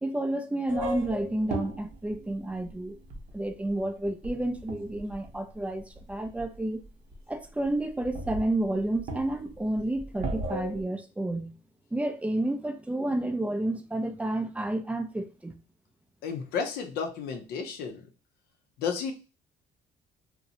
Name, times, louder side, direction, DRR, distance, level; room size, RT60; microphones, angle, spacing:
voice 1, 0.0-3.0 3.3-6.8 7.3-11.6 11.9-15.5, right 1 dB, 10° right, 0.3 m, -30 dB
sound 1, 0.7-3.5 4.0-5.3 6.0-6.6 6.8-6.9 7.1-7.2 7.6-7.7 8.0-10.8, right 1 dB, 50° right, 0.7 m, -36 dB
voice 2, 16.2-18.0 18.8-19.1, left 6 dB, 70° left, 0.5 m, -32 dB
2.6 x 2.0 x 2.6 m
cardioid pair, 110°, 17 cm